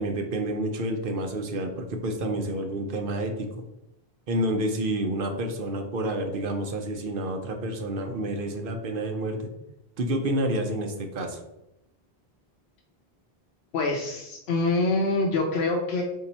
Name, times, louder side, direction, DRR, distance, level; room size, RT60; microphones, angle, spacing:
voice 1, 0.0-3.5 4.3-9.5 10.0-11.4, right 1 dB, 60° right, 5 dB, 0.8 m, -29 dB
voice 2, 13.7-16.0, left 2 dB, 80° left, 0 dB, 0.9 m, -25 dB
3.8 x 2.7 x 4.1 m, 0.87 s
omnidirectional pair, 1.1 m